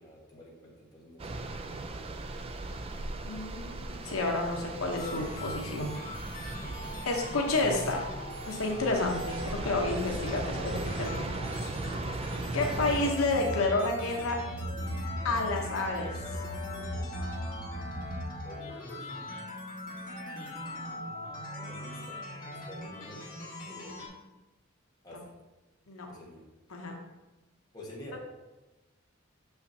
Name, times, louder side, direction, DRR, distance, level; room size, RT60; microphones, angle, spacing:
voice 1, 0.0-1.4 6.4-6.9 18.4-19.1 21.5-22.2 22.5-24.1 25.0-25.2 26.0-26.4 27.7-28.2, left 1 dB, 20° left, -4 dB, 1.4 m, -49 dB
sound 1, 1.2-13.1, right 2 dB, 30° right, 0.3 m, -38 dB
voice 2, 3.2-6.4 7.1-8.1 8.5-11.7 12.5-14.4 15.2-16.1 25.9-26.1 26.7-26.9, left 2 dB, 85° left, 1 dB, 0.9 m, -30 dB
sound 2, 4.9-24.1, left 1 dB, 40° left, 1.8 m, -42 dB
sound 3, 12.5-18.4, equal, 55° left, 1.2 m, -38 dB
6.6 x 5.7 x 2.7 m, 1.1 s
head